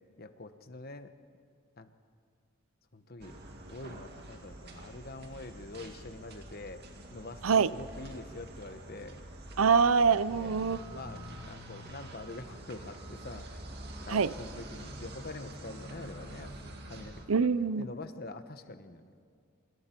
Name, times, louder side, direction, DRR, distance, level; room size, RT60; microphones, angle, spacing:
voice 1, 0.2-1.1 1.8-1.9 2.9-3.4 3.7-6.8 7.1-9.2 10.3-10.5 10.8-13.6 14.0-17.5 17.8-19.1, left 2 dB, 45° left, 9 dB, 1.1 m, -45 dB
sound 1, 3.2-17.2, right 1 dB, 50° right, 2.4 m, -46 dB
voice 2, 9.6-10.8 14.1-14.3 17.3-17.9, right 5 dB, 75° right, 16 dB, 0.6 m, -24 dB
27.5 x 25.5 x 4.5 m, 2.3 s
head